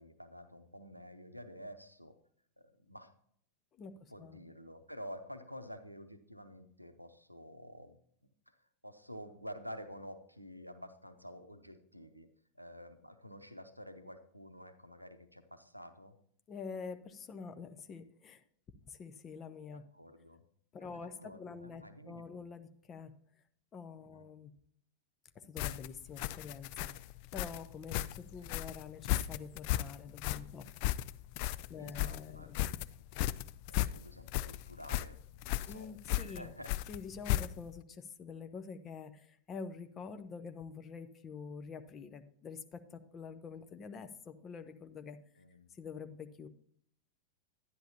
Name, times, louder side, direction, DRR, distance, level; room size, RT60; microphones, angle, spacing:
voice 1, 0.0-2.2 2.6-3.1 4.1-8.6 8.8-12.3 12.5-16.2 19.7-20.4 20.8-22.2 24.0-24.3 31.8-32.9 33.7-36.7 45.4-45.7, equal, 90° right, 10 dB, 0.7 m, -50 dB
voice 2, 3.8-4.4 16.5-18.4 18.8-19.8 20.7-23.1 23.7-24.5 25.3-26.9 27.3-30.6 31.4-32.6 35.7-36.5 36.9-45.2 45.7-46.5, left 5 dB, 25° left, 9 dB, 0.8 m, -46 dB
sound 1, 25.6-37.8, left 15 dB, 45° left, 0.3 m, -36 dB
11.0 x 10.5 x 2.8 m, 0.66 s
figure-of-eight pair, 90°, 0 cm